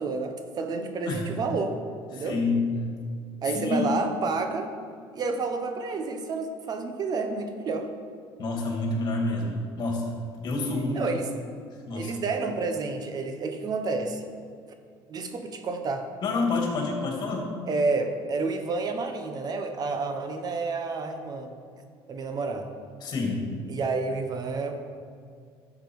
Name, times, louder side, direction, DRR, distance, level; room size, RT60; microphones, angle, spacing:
voice 1, 0.0-1.7 2.1-2.4 3.4-4.7 5.1-7.9 10.9-11.3 11.9-14.2 15.1-16.1 17.7-21.5 22.1-22.7 23.7-24.8, right 3 dB, 45° right, 6 dB, 1.0 m, -29 dB
voice 2, 2.1-2.7 3.5-3.9 8.4-10.2 10.4-11.0 11.9-12.1 16.2-17.5 23.0-23.4, left 3 dB, 50° left, 0 dB, 2.5 m, -28 dB
11.5 x 7.4 x 4.7 m, 2.2 s
cardioid pair, 115°, 10 cm